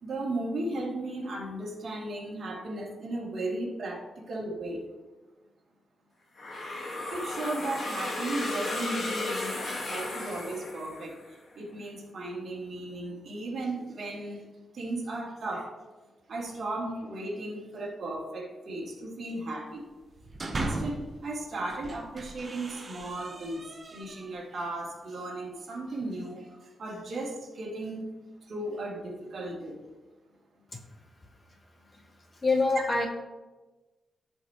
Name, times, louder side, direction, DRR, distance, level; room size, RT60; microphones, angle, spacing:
voice 1, 0.0-4.9 7.1-14.4 14.7-15.7 16.3-19.8 20.5-28.0 28.5-29.8 32.7-33.0, right 2 dB, 45° right, -4 dB, 2.5 m, -36 dB
sound 1, 6.4-11.3, left 2 dB, 40° left, 1.5 m, -34 dB
sound 2, 20.0-21.1 21.6-24.5, right 2 dB, 25° right, 0.8 m, -38 dB
voice 2, 32.4-33.1, left 3 dB, 25° left, 4 dB, 0.7 m, -24 dB
15.5 x 5.3 x 3.0 m, 1.2 s
wide cardioid pair, 180°, 0 cm